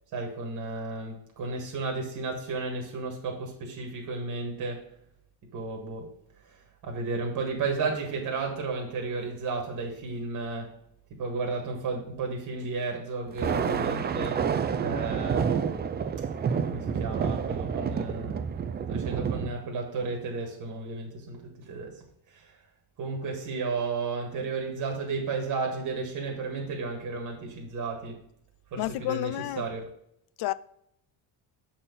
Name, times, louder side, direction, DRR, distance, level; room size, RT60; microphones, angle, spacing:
voice 1, 0.1-4.9 5.5-6.1 6.4-10.8 11.1-14.5 14.8-15.9 16.7-18.4 18.9-22.0 22.3-22.6 23.0-28.3 28.7-29.8, right 4 dB, 50° right, 1.7 m, -33 dB
Thunder, 13.3-19.5, right 7 dB, 25° right, 0.4 m, -29 dB
voice 2, 28.8-29.7 30.4-30.5, left 16 dB, 60° left, 0.5 m, -30 dB
7.1 x 4.4 x 5.3 m
cardioid pair, 155°, 45 cm